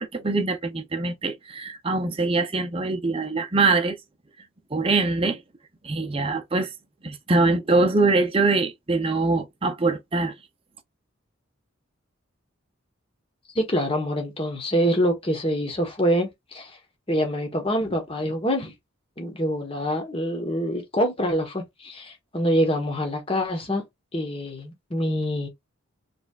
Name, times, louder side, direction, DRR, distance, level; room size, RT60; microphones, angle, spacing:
voice 1, 0.0-4.0 4.7-5.4 5.8-6.7 7.0-10.3, right 3 dB, 25° right, 0.6 m, -23 dB
voice 2, 13.5-16.8 17.1-18.7 19.2-23.8 24.1-25.5, equal, 25° left, 1.2 m, -25 dB
5.0 x 3.3 x 2.4 m
head